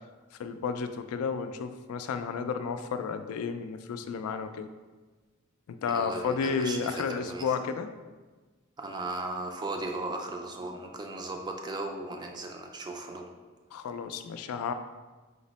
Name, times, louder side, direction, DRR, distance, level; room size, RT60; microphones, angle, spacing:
voice 1, 0.4-4.7 5.7-7.9 13.7-14.7, left 5 dB, 90° left, 9 dB, 0.3 m, -32 dB
voice 2, 5.9-7.5 8.8-13.3, right 2 dB, 20° right, 3 dB, 0.3 m, -36 dB
4.9 x 2.0 x 4.0 m, 1.3 s
head